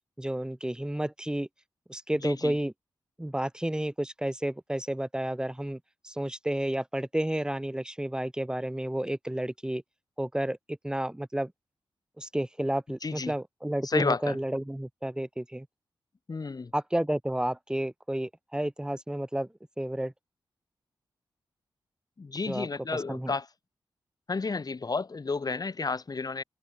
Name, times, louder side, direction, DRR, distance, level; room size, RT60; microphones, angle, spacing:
voice 1, 0.2-1.5 1.9-2.7 3.2-9.8 10.2-11.5 12.2-15.7 16.7-19.5 19.8-20.1 22.5-22.7 22.9-23.3, right 1 dB, 10° right, 1.8 m, -31 dB
voice 2, 2.2-2.5 13.0-13.3 13.8-14.4 16.3-16.7 22.2-23.5 24.3-26.4, left 4 dB, 45° left, 2.9 m, -31 dB
open air
cardioid pair, 50°, 9 cm